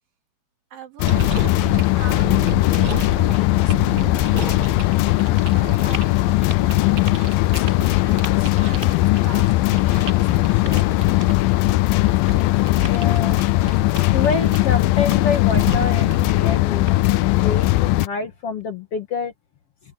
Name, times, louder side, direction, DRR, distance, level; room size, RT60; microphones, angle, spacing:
voice 1, 0.7-1.2 1.5-2.4 2.7-4.7 5.5-10.9, right 7 dB, 75° right, 4.6 m, -41 dB
sound 1, 1.0-18.1, left 19 dB, 85° left, 2.4 m, -19 dB
sound 2, 1.1-16.3, right 5 dB, 45° right, 2.6 m, -34 dB
voice 2, 12.7-13.4 14.1-19.3, left 5 dB, 55° left, 2.0 m, -27 dB
sound 3, 18.2-18.6, equal, 10° right, 7.0 m, -43 dB
open air
omnidirectional pair, 4.0 m